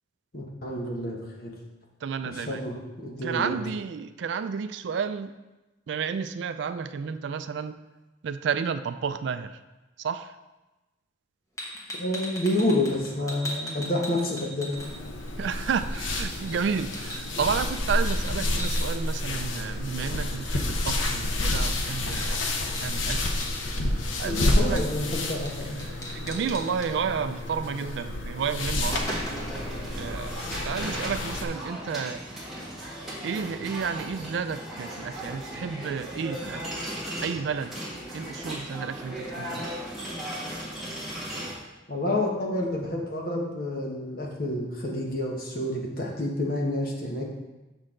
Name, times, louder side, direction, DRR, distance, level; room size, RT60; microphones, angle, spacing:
voice 1, 0.3-1.5 2.3-3.6 12.0-14.8 24.2-25.8 41.9-47.2, left 1 dB, 50° left, -1 dB, 1.2 m, -29 dB
voice 2, 2.0-2.7 3.2-5.3 5.9-7.8 8.2-9.6 10.0-10.4 15.4-22.4 22.8-23.3 24.2-24.8 25.6-29.2 30.0-32.2 33.2-36.8 37.2-37.8 38.1-39.7, right 6 dB, 70° right, 11 dB, 0.3 m, -31 dB
sound 1, 11.6-15.3 15.6-18.9 21.0-21.2 21.4-23.6 24.8-25.1 25.5-25.6 25.8-26.9 28.0-28.1 28.5-29.6, left 1 dB, 15° left, 0.9 m, -39 dB
sound 2, 14.8-31.4, left 1 dB, 85° left, 0.8 m, -29 dB
sound 3, 28.8-41.5, right 1 dB, ahead, 1.6 m, -37 dB
6.3 x 6.2 x 3.7 m, 1.1 s
head